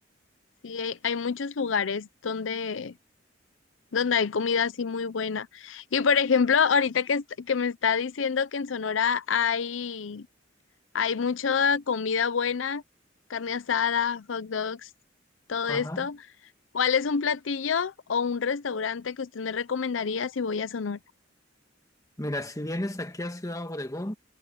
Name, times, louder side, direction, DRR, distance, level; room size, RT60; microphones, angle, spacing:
voice 1, 0.6-2.9 3.9-10.3 10.9-12.8 13.3-14.9 15.5-16.2 16.7-21.0, left 6 dB, 85° left, 0.6 m, -27 dB
voice 2, 15.7-16.1 22.2-24.1, left 1 dB, 20° left, 1.6 m, -33 dB
head